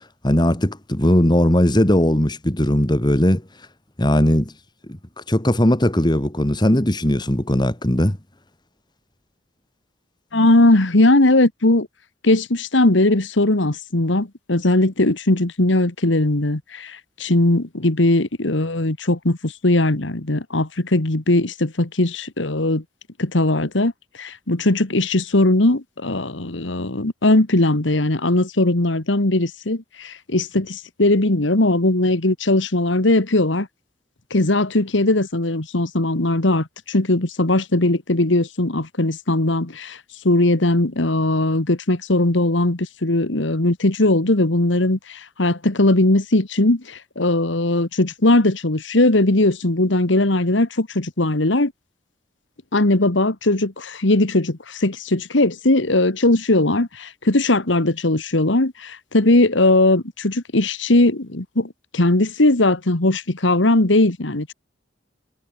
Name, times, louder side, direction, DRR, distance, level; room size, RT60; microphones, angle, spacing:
voice 1, 0.2-3.4 4.0-4.5 5.3-8.2, left 1 dB, 25° left, 2.1 m, -18 dB
voice 2, 10.3-11.9 12.2-22.8 23.2-23.9 24.2-33.7 34.3-40.0 40.2-51.7 52.7-64.5, left 2 dB, 75° left, 1.9 m, -19 dB
head